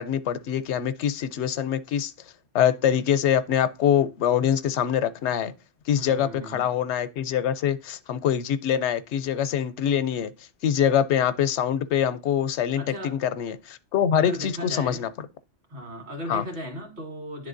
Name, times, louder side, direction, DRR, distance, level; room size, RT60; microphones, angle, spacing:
voice 1, 0.0-2.1 2.5-5.5 5.9-10.3 10.6-15.1 16.3-16.4, left 9 dB, 75° left, 0.9 m, -24 dB
voice 2, 6.0-6.6 12.8-13.2 14.1-15.2 15.7-17.5, equal, 65° right, 2.1 m, -36 dB
10.5 x 3.6 x 2.5 m
omnidirectional pair, 1.2 m